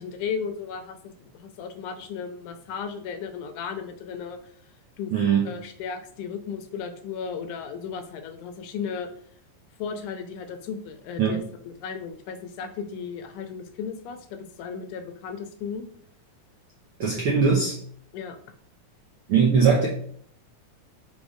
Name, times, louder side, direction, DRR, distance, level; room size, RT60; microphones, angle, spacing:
voice 1, 0.0-4.5 5.0-5.1 5.5-9.1 9.8-15.9 18.1-18.4, left 6 dB, 80° left, 8 dB, 2.0 m, -35 dB
voice 2, 5.1-5.5 11.2-11.4 17.0-17.7 19.3-19.9, right 6 dB, 75° right, -3 dB, 1.2 m, -20 dB
5.2 x 3.7 x 4.9 m, 0.63 s
omnidirectional pair, 3.7 m